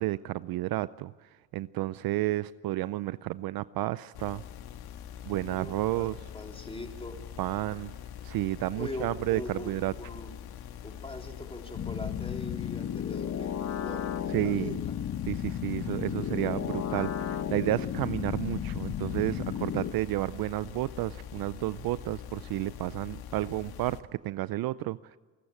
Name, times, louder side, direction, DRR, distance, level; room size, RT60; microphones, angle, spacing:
voice 1, 0.0-4.4 5.3-6.2 7.4-8.0 8.2-9.9 14.3-14.8 15.3-24.0 24.2-25.2, right 17 dB, 50° right, 17 dB, 0.6 m, -31 dB
sound 1, 4.1-24.0, left 9 dB, 55° left, 1.7 m, -44 dB
voice 2, 5.5-6.1 6.3-7.2 8.8-10.3 10.8-14.0 14.4-14.7, left 2 dB, 10° left, 3 dB, 3.7 m, -41 dB
sound 2, 11.7-19.9, left 9 dB, 35° left, 1.2 m, -34 dB
28.5 x 14.0 x 8.7 m, 1.5 s
supercardioid pair, 95°, 45 cm